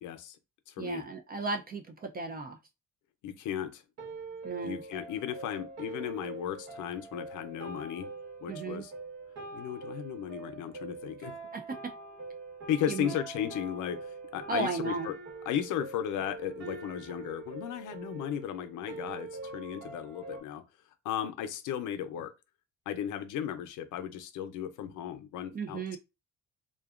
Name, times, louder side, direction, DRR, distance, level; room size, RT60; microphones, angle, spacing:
voice 1, 0.0-0.4 0.7-1.0 3.2-3.8 4.6-8.1 8.4-8.9 9.5-11.4 12.7-15.2 15.5-20.6 21.0-22.3 22.9-26.0, left 10 dB, 80° left, 0.5 m, -35 dB
voice 2, 0.8-2.6 4.4-4.8 8.5-8.8 11.5-11.6 12.9-13.1 14.5-15.1 25.5-26.0, right 4 dB, 30° right, 0.4 m, -35 dB
sound 1, 4.0-20.4, right 3 dB, 60° right, 1.1 m, -44 dB
2.6 x 2.2 x 2.4 m
cardioid pair, 90°, 30 cm